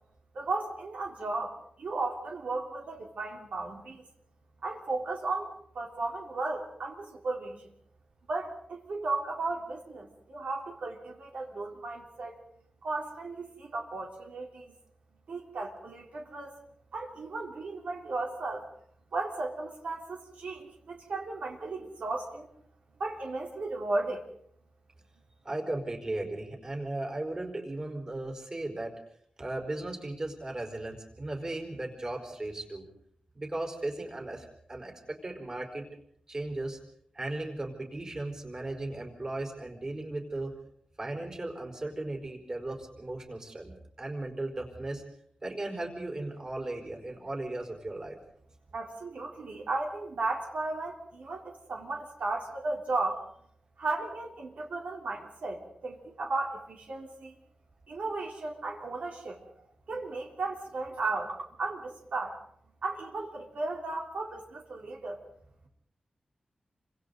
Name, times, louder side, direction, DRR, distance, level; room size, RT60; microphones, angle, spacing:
voice 1, 0.3-4.0 4.6-7.7 8.3-12.4 12.8-14.7 15.3-16.5 16.9-18.7 19.1-22.5 23.0-24.3 48.7-53.2 53.8-57.3 57.9-59.5 59.9-62.4 62.8-65.2, right 3 dB, 75° right, 0 dB, 3.8 m, -35 dB
voice 2, 25.4-29.0 29.4-32.9 33.3-35.8 36.3-36.8 37.1-40.5 41.0-45.0 45.4-48.2, right 2 dB, 30° right, 2 dB, 4.7 m, -36 dB
29.0 x 26.0 x 4.1 m, 0.67 s
wide cardioid pair, 170°, 2 cm